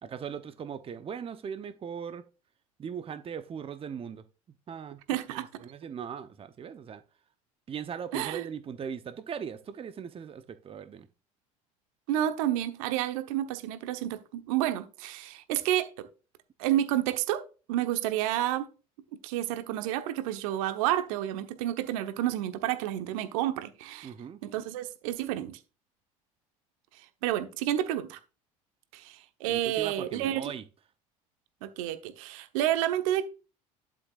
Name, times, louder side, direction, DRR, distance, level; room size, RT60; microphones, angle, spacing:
voice 1, 0.0-2.2 2.8-4.2 4.7-5.0 5.3-7.0 7.7-11.1 24.0-24.4 29.5-30.6, right 7 dB, 30° right, 0.8 m, -39 dB
voice 2, 5.1-5.5 8.1-8.4 12.1-15.9 16.6-17.4 17.7-18.7 19.2-24.1 24.4-25.6 27.2-28.2 28.9-30.5 31.6-33.2, right 12 dB, 70° right, 1.0 m, -30 dB
11.5 x 6.2 x 2.4 m
hypercardioid pair, 70°, 18 cm